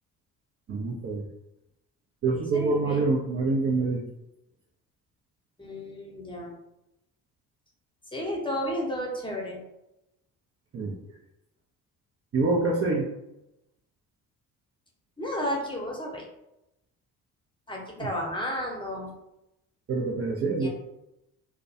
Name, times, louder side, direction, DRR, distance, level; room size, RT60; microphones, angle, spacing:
voice 1, 0.7-1.3 2.2-4.1 10.7-11.0 12.3-13.1 18.0-18.1 19.9-20.7, right 3 dB, 35° right, -2 dB, 0.5 m, -26 dB
voice 2, 2.5-3.0 5.6-6.5 8.1-9.6 15.2-16.2 17.7-19.1 20.6-20.7, equal, 10° left, -2 dB, 0.8 m, -32 dB
2.2 x 2.1 x 2.7 m, 0.87 s
hypercardioid pair, 50°, 42 cm